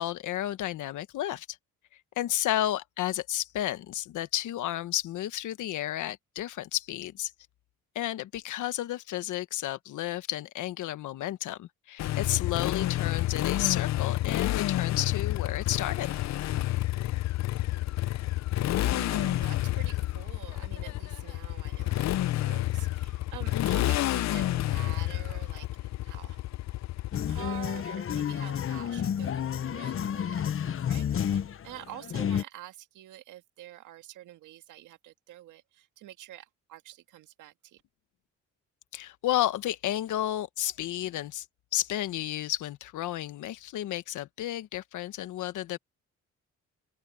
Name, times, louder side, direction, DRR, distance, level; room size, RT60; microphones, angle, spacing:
voice 1, 0.0-1.6 2.2-7.3 7.9-16.1 23.5-23.8 38.9-41.4 41.7-45.8, left 13 dB, 80° left, 1.3 m, -32 dB
Motorcycle, 12.0-27.8, left 15 dB, 65° left, 0.6 m, -29 dB
voice 2, 18.8-26.4 27.3-37.8, right 14 dB, 90° right, 1.9 m, -47 dB
sound 1, 27.1-32.4, left 9 dB, 45° left, 0.9 m, -30 dB
open air
cardioid pair, 90°, 30 cm